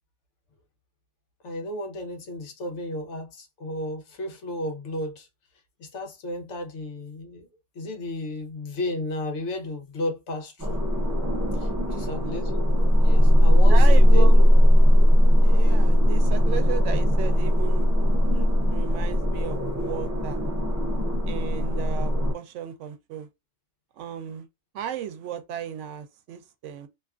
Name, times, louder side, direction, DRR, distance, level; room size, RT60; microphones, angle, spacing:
voice 1, 1.4-5.3 5.8-7.5 7.7-10.8 11.5-12.5 13.0-14.3, left 1 dB, 80° left, 1.1 m, -33 dB
sound 1, 10.6-22.3, equal, 25° right, 0.4 m, -19 dB
voice 2, 11.9-12.4 13.7-14.4 15.4-17.9 18.3-20.4 21.3-23.3 24.0-24.5 24.7-26.9, right 9 dB, 90° right, 0.9 m, -35 dB
2.7 x 2.4 x 2.3 m
omnidirectional pair, 1.2 m